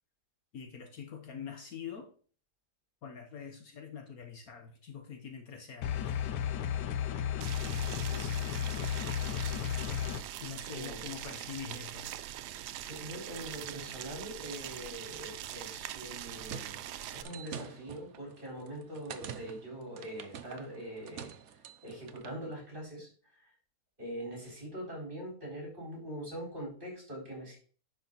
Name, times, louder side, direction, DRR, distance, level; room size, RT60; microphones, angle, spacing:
voice 1, 0.5-2.1 3.0-6.2 7.6-8.2 10.4-12.1, left 7 dB, 60° left, 1.4 m, -45 dB
sound 1, 5.8-10.2, left 9 dB, 85° left, 1.3 m, -33 dB
Boiling, 7.4-17.2, right 12 dB, 80° right, 1.2 m, -43 dB
voice 2, 10.7-11.3 12.8-16.8 17.1-21.3 21.8-23.4 24.0-27.6, right 1 dB, 30° right, 4.5 m, -43 dB
sound 2, 16.0-22.4, right 8 dB, 60° right, 0.8 m, -47 dB
10.5 x 5.0 x 4.0 m
omnidirectional pair, 1.8 m